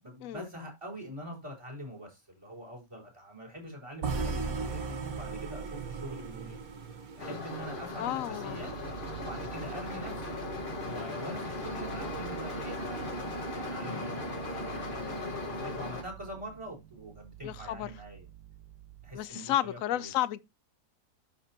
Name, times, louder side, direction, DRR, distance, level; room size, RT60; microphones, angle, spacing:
voice 1, 0.0-6.6 7.1-8.7 9.2-10.4 10.9-18.2 19.0-20.1, right 1 dB, 15° right, 4.7 m, -44 dB
sound 1, 4.0-8.1, right 4 dB, 60° right, 1.6 m, -36 dB
sound 2, 7.2-16.0, left 2 dB, 30° left, 1.6 m, -37 dB
voice 2, 8.0-8.6 17.4-17.9 19.1-20.4, left 13 dB, 70° left, 0.8 m, -32 dB
sound 3, 8.5-19.3, right 13 dB, 80° right, 1.4 m, -49 dB
12.0 x 5.1 x 2.9 m
omnidirectional pair, 1.8 m